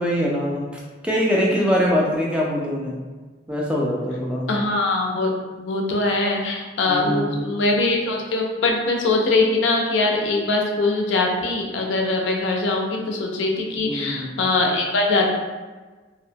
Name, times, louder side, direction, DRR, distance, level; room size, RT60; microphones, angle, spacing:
voice 1, 0.0-3.0 3.5-4.5 6.9-7.4 13.8-14.4, equal, 5° right, -4 dB, 0.3 m, -23 dB
voice 2, 4.5-5.3 5.6-15.3, left 2 dB, 80° left, 0 dB, 0.4 m, -22 dB
2.7 x 2.1 x 2.6 m, 1.3 s
head